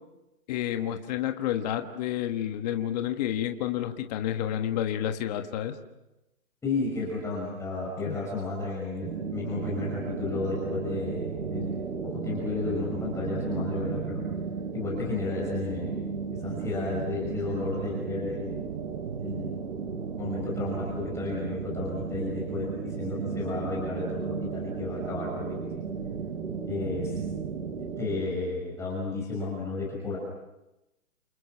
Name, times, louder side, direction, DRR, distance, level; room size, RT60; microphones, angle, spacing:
voice 1, 0.5-5.7 8.1-8.2, left 11 dB, 30° left, 6 dB, 1.5 m, -30 dB
voice 2, 6.6-14.3 14.7-16.0 16.3-18.6 19.2-19.7 20.2-25.7 26.7-27.2 28.0-30.2, left 3 dB, 5° left, -4 dB, 5.9 m, -33 dB
sound 1, 9.0-28.2, right 5 dB, 55° right, 6.1 m, -34 dB
29.0 x 28.5 x 6.0 m, 0.95 s
hypercardioid pair, 155°, 42 cm